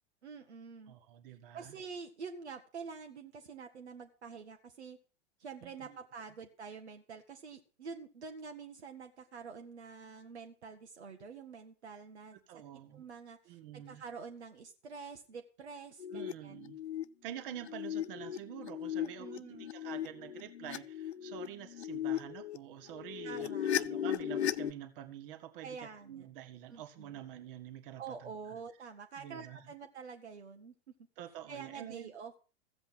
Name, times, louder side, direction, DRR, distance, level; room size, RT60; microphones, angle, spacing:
voice 1, 0.2-0.9 1.5-5.0 5.4-12.4 12.9-16.7 19.0-19.7 23.2-23.7 25.6-26.3 26.7-27.2 28.0-30.7 31.5-32.4, right 5 dB, 75° right, 4 dB, 1.4 m, -47 dB
voice 2, 0.9-1.8 5.6-6.0 12.5-13.0 13.5-14.0 16.1-16.8 17.2-28.3 29.2-29.7 31.2-32.1, right 11 dB, 50° right, 8 dB, 1.8 m, -47 dB
sound 1, 16.0-16.3 16.6-17.0 17.5-22.6 22.9-24.7, left 10 dB, 75° left, 0.6 m, -37 dB
14.5 x 7.9 x 5.9 m, 0.37 s
figure-of-eight pair, 95°, 33 cm